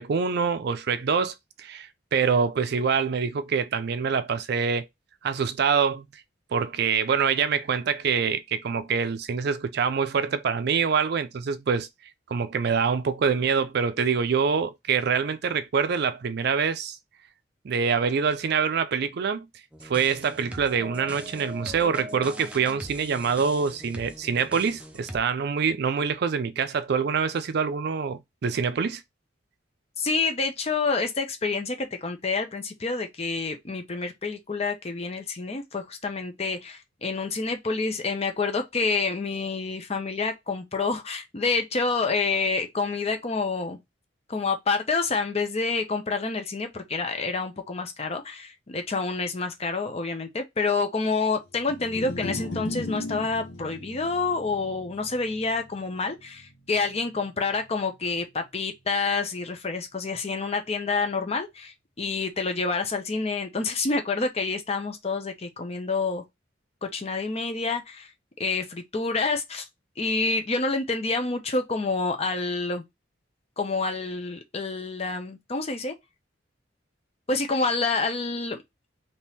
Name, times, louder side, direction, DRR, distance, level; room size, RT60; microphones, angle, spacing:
voice 1, 0.0-4.9 5.2-6.1 6.5-11.9 12.3-17.0 17.6-19.5 19.8-29.0, right 6 dB, 60° right, 0.4 m, -25 dB
sound 1, 19.7-25.2, right 1 dB, 5° right, 0.6 m, -41 dB
voice 2, 30.0-43.8 44.3-66.2 66.8-68.1 68.4-69.6 70.0-72.8 73.6-75.9 77.3-78.6, left 4 dB, 35° left, 0.7 m, -28 dB
sound 2, 51.6-57.9, left 2 dB, 80° left, 0.8 m, -38 dB
3.6 x 2.9 x 2.7 m
head